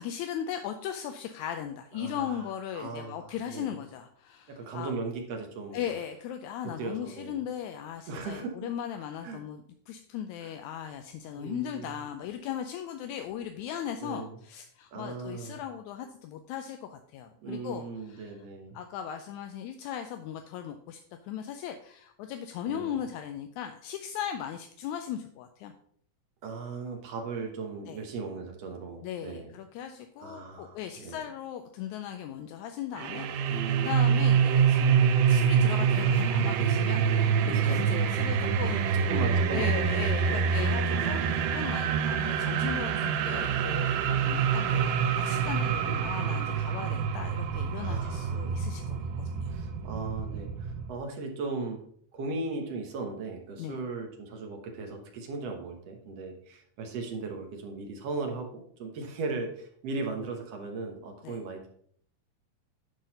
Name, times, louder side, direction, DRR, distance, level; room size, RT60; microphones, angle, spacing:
voice 1, 0.0-4.9 5.7-18.3 18.7-25.7 27.9-28.1 29.0-49.5 53.6-53.8 61.2-61.4, left 9 dB, 80° left, 6 dB, 1.8 m, -38 dB
voice 2, 1.9-2.5 2.7-3.8 4.5-5.9 6.8-7.4 8.1-8.5 9.2-9.4 10.4-10.5 11.4-12.0 14.0-14.4 14.9-15.6 17.4-18.8 22.7-23.0 26.4-29.5 30.2-31.2 33.5-34.2 35.9-36.5 37.4-37.9 38.3-38.7 39.1-40.5 40.9-41.6 45.7-46.0 47.8-48.6 49.5-51.8 52.1-61.7, right 3 dB, 60° right, 3 dB, 2.0 m, -37 dB
sound 1, 33.0-50.9, right 7 dB, 80° right, 2.2 m, -26 dB
10.5 x 4.0 x 5.2 m, 0.62 s
omnidirectional pair, 3.7 m